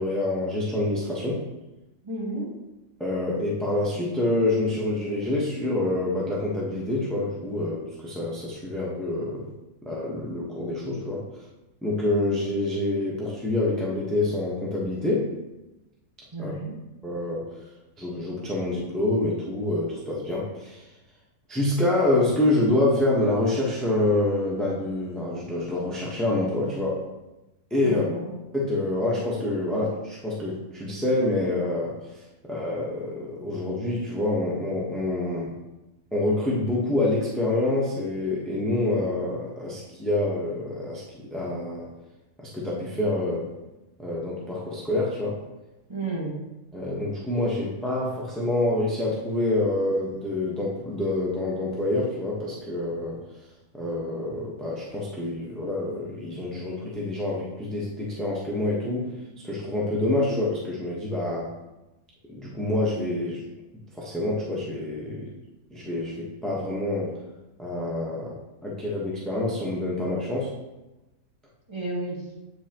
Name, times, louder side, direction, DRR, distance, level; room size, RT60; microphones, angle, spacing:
voice 1, 0.0-1.4 3.0-9.4 9.8-11.3 11.8-15.3 16.4-16.5 17.0-17.4 18.0-20.9 21.5-27.0 27.7-28.1 28.5-32.0 32.4-35.5 36.1-41.9 42.4-43.5 44.0-45.4 46.7-53.2 53.7-59.1 59.4-61.5 62.3-63.4 63.9-65.3 65.7-67.1 67.6-68.4 68.6-70.5, left 2 dB, ahead, -5 dB, 0.9 m, -27 dB
voice 2, 2.0-2.5 16.3-16.8 27.8-28.3 45.9-46.4 71.7-72.2, right 2 dB, 20° right, -4 dB, 1.4 m, -32 dB
8.2 x 5.5 x 3.0 m, 1.0 s
omnidirectional pair, 1.6 m